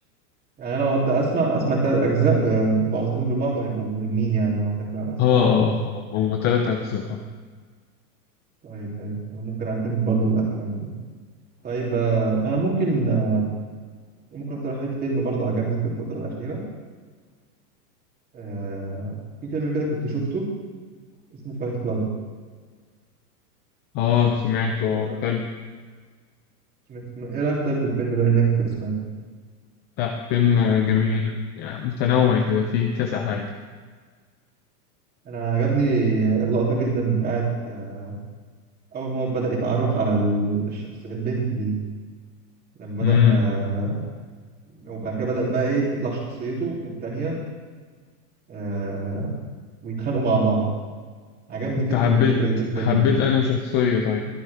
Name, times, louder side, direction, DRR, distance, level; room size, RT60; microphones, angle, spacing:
voice 1, 0.6-5.7 8.6-10.9 11.6-13.4 14.3-16.6 18.3-19.2 19.4-20.5 21.4-22.1 25.0-25.2 26.9-28.9 35.2-38.2 38.9-41.8 42.8-44.0 44.7-47.4 48.5-49.3 49.8-50.7 51.5-53.2, right 4 dB, 20° right, -3 dB, 3.0 m, -24 dB
voice 2, 5.2-7.2 23.9-25.5 30.0-33.5 43.0-43.4 51.8-52.4 52.8-54.3, left 7 dB, 25° left, 4 dB, 0.6 m, -21 dB
22.5 x 8.3 x 3.5 m, 1.5 s
supercardioid pair, 160°, 46 cm